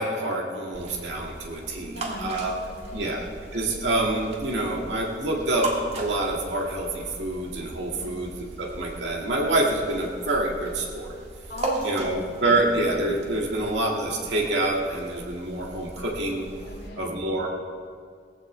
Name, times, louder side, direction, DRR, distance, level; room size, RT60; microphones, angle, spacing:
voice 1, 0.0-2.6 2.9-3.3 3.5-8.3 8.6-11.1 11.8-16.5 17.0-17.5, right 2 dB, 90° right, -1 dB, 2.0 m, -27 dB
sound 1, 0.7-16.9, right 2 dB, 40° right, 1.6 m, -38 dB
voice 2, 1.8-3.1 7.9-8.2 11.5-12.3 16.7-17.1, left 1 dB, 90° left, -5 dB, 2.8 m, -39 dB
18.0 x 15.5 x 3.3 m, 2.1 s
head